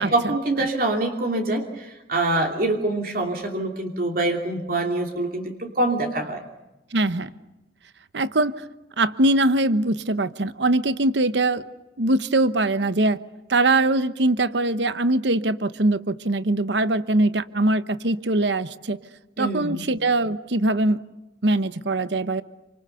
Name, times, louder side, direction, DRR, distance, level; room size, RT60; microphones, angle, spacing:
voice 1, 0.0-6.4 19.4-19.8, right 2 dB, 50° right, 2 dB, 2.9 m, -25 dB
voice 2, 6.9-7.3 8.1-8.5 9.0-11.6 12.0-13.2 13.5-19.0 19.4-21.0 21.4-22.4, right 2 dB, 70° right, 13 dB, 1.0 m, -22 dB
29.0 x 26.0 x 6.9 m, 1.0 s
head